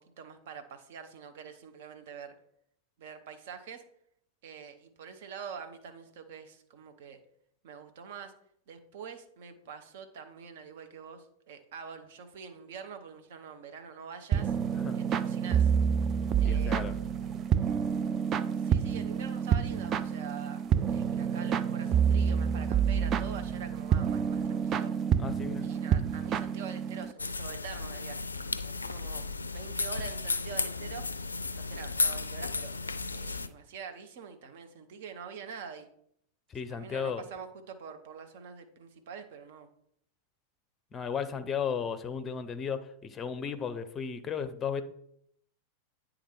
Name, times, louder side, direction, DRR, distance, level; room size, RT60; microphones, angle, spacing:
voice 1, 0.2-2.4 3.0-3.8 4.4-7.2 7.6-8.3 8.7-14.5 14.9-15.7 16.4-17.1 18.6-20.6 20.9-24.9 25.6-28.3 28.6-29.2 29.5-31.1 31.4-32.7 33.1-35.9 36.7-39.7, right 6 dB, 55° right, 7 dB, 0.9 m, -45 dB
sound 1, 14.3-27.1, right 7 dB, 30° right, 0.4 m, -28 dB
voice 2, 16.4-16.9 25.2-25.7 36.5-37.2 40.9-44.8, left 7 dB, 20° left, 12 dB, 0.6 m, -35 dB
sound 2, 27.2-33.5, left 3 dB, 80° left, 0.3 m, -34 dB
8.9 x 3.8 x 4.5 m, 0.70 s
figure-of-eight pair, 90°, 0 cm